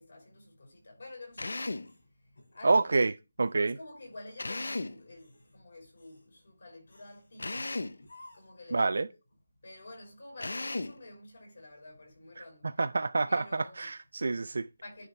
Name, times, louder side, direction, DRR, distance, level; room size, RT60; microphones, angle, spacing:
voice 1, 0.0-1.6 2.2-2.9 3.6-8.0 8.3-8.9 9.6-12.8 13.3-13.9 14.8-15.1, left 2 dB, 45° left, 5.2 m, -49 dB
Drill, 1.4-1.9 4.4-5.0 7.4-8.0 10.4-11.0, left 2 dB, 90° left, 0.6 m, -35 dB
sound 1, 1.8-3.0 3.4-3.6 4.1-4.6 5.1-5.6 6.0-6.3 6.9-7.4 8.0-8.7, left 2 dB, 70° left, 4.2 m, -57 dB
voice 2, 2.6-3.1 3.4-3.8 8.7-9.1 12.4-14.7, right 3 dB, 55° right, 0.4 m, -28 dB
10.0 x 4.8 x 3.3 m
figure-of-eight pair, 180°, 0 cm